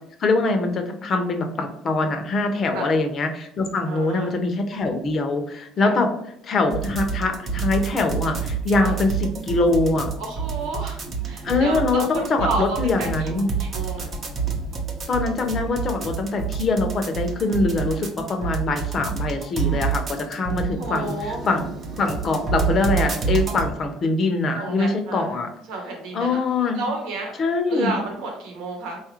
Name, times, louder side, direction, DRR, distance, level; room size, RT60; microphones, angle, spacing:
voice 1, 0.2-6.1 6.4-10.1 11.4-13.5 15.1-25.5 26.1-26.8 27.4-28.0, left 3 dB, 35° left, 5 dB, 0.6 m, -23 dB
voice 2, 3.9-4.3 5.8-5.9 8.8-8.9 10.2-14.1 20.8-21.4 24.5-25.3 25.7-26.4 26.7-27.3 27.7-29.0, right 3 dB, 75° right, 1 dB, 0.9 m, -31 dB
sound 1, 6.7-23.7, right 6 dB, 30° right, 0.6 m, -28 dB
3.9 x 2.4 x 3.0 m, 0.72 s
cardioid pair, 145°, 0 cm